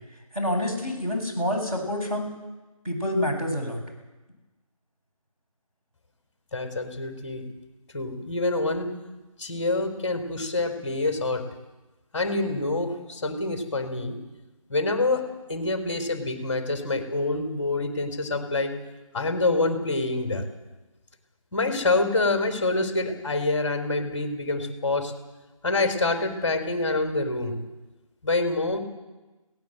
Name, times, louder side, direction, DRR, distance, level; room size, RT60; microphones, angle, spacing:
voice 1, 0.3-2.3 2.8-3.8, left 1 dB, 20° right, -4 dB, 7.8 m, -27 dB
voice 2, 6.5-7.4 7.9-8.9 9.4-11.5 12.1-14.2 14.7-18.7 19.1-20.4 21.5-25.1 25.6-27.6 28.2-28.8, left 2 dB, 15° left, 2 dB, 4.0 m, -26 dB
23.0 x 18.0 x 8.1 m, 1.1 s
figure-of-eight pair, 170°, 18 cm